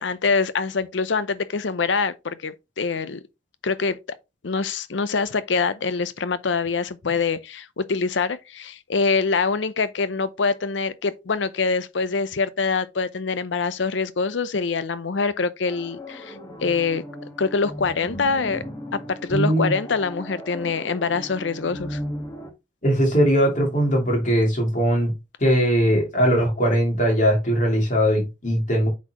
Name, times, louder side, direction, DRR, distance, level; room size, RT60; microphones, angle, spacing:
voice 1, 0.0-3.2 3.6-4.0 4.4-16.4 16.6-17.0 17.4-18.6 19.1-22.0, left 4 dB, 75° left, 0.6 m, -24 dB
Haunted Organ, 15.7-22.5, equal, 20° left, 1.3 m, -36 dB
voice 2, 19.3-19.7 22.8-25.1 25.4-28.9, equal, 40° left, 2.7 m, -20 dB
8.1 x 4.3 x 2.9 m
head